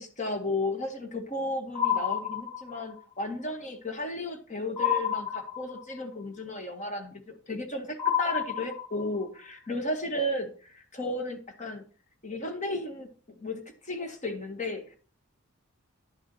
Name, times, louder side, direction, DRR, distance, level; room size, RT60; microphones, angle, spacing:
voice 1, 0.0-11.8 12.2-15.0, left 1 dB, 35° left, 6 dB, 1.7 m, -34 dB
sound 1, 1.7-3.0 4.8-6.0 8.0-9.2, left 8 dB, 10° left, 1.6 m, -29 dB
10.5 x 6.2 x 4.2 m, 0.40 s
head